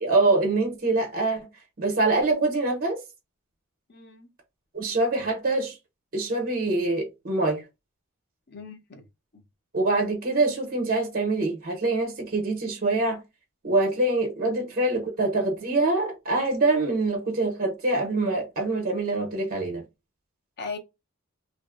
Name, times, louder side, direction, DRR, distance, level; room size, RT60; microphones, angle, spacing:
voice 1, 0.0-1.5 1.8-3.0 4.7-5.8 6.1-7.6 9.7-13.2 13.6-19.8, right 2 dB, 45° right, 0.6 m, -25 dB
voice 2, 3.9-4.3 8.5-9.0 9.3-9.4 20.6-20.8, left 4 dB, 50° left, 0.6 m, -38 dB
2.7 x 2.0 x 2.2 m
head